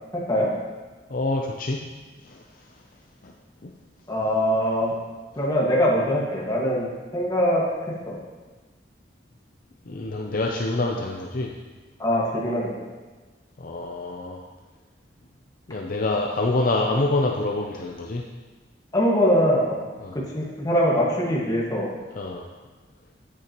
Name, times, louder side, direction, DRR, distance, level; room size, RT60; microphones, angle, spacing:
voice 1, 0.1-0.5 4.1-4.9 5.4-6.9 7.1-7.6 8.1-8.2 12.0-12.7 18.9-19.8 20.3-21.9, equal, 20° left, -4 dB, 1.7 m, -22 dB
voice 2, 1.1-1.8 2.2-2.4 3.2-3.3 9.9-11.5 13.6-14.4 15.7-18.2 20.0-20.2 22.1-22.5, left 2 dB, 50° left, 0 dB, 0.6 m, -26 dB
9.6 x 8.5 x 3.0 m, 1.3 s
head